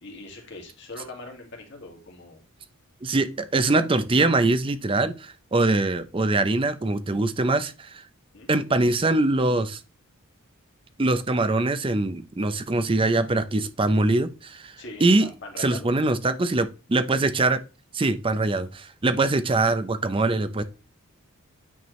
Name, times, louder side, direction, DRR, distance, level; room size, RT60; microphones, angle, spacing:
voice 1, 0.0-2.4 8.3-8.5 14.8-15.9, left 2 dB, 55° left, 2.1 m, -41 dB
voice 2, 3.0-8.0 8.5-9.8 11.0-14.8 15.0-15.3 15.6-17.6 17.9-20.6, right 2 dB, 25° right, 0.5 m, -23 dB
9.3 x 4.4 x 3.1 m
head